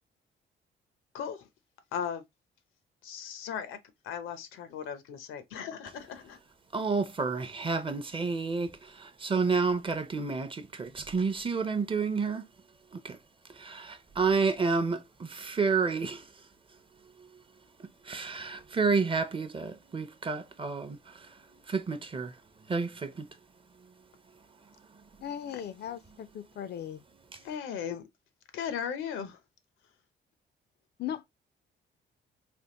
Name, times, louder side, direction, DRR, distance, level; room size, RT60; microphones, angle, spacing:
voice 1, 1.1-1.5 1.9-2.2 3.0-3.8 4.0-6.4 25.5-25.6 27.4-28.0 28.5-29.4, left 8 dB, 90° left, 0.7 m, -37 dB
voice 2, 6.7-12.4 12.9-13.2 13.5-16.3 18.0-21.3 21.7-22.3 22.7-23.3 25.5-25.6 27.3-27.4, right 4 dB, 25° right, 0.6 m, -30 dB
voice 3, 25.2-27.0 31.0-31.3, left 10 dB, 55° left, 0.4 m, -38 dB
3.4 x 2.5 x 2.9 m
cardioid pair, 90°, 20 cm